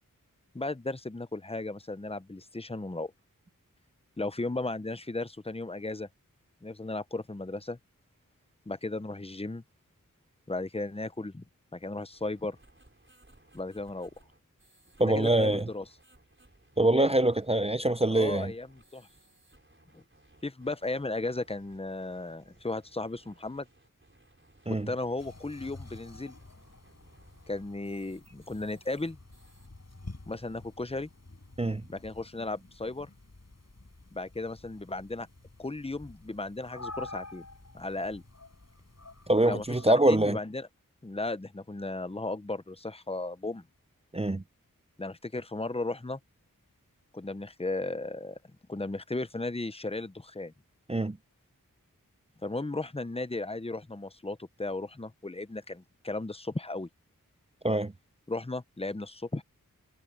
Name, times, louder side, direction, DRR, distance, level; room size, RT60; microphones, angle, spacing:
voice 1, 0.5-3.1 4.2-6.1 6.6-7.8 8.7-9.6 10.5-11.4 11.7-12.6 13.5-14.1 15.0-15.8 16.9-17.1 18.1-19.1 19.9-20.0 20.4-23.7 24.9-26.3 27.5-29.2 30.3-31.1 31.9-33.1 34.1-35.3 35.6-37.4 37.7-38.2 39.4-40.7 41.0-43.6 45.0-46.2 47.1-48.4 48.7-50.5 52.4-56.9 58.3-59.4, left 2 dB, 15° left, 0.8 m, -35 dB
sound 1, 12.1-29.7, right 1 dB, 35° right, 4.9 m, -62 dB
voice 2, 15.0-15.7 16.8-18.5 24.7-24.9 31.6-31.8 39.3-40.4 44.1-44.4 50.9-51.2 57.6-57.9, right 1 dB, 20° right, 0.5 m, -24 dB
sound 2, 25.2-39.9, left 2 dB, 50° left, 7.7 m, -49 dB
wide cardioid pair, 50°, 34 cm